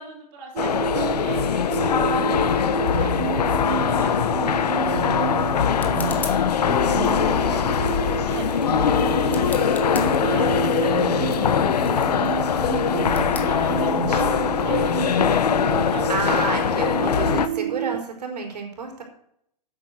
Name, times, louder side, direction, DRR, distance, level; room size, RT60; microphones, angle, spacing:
voice 1, 0.0-8.7 9.0-12.4 13.1-15.2 15.7-16.5, right 4 dB, 35° right, 0 dB, 4.0 m, -43 dB
sound 1, 0.6-17.5, left 8 dB, 80° left, 1.2 m, -22 dB
sound 2, 0.6-18.0, right 13 dB, 60° right, 0.4 m, -29 dB
sound 3, 5.6-14.3, left 4 dB, 10° left, 1.4 m, -43 dB
voice 2, 13.5-14.2 16.1-19.0, right 4 dB, 85° right, 4 dB, 4.5 m, -30 dB
10.5 x 8.6 x 7.9 m, 0.70 s
hypercardioid pair, 155°, 20 cm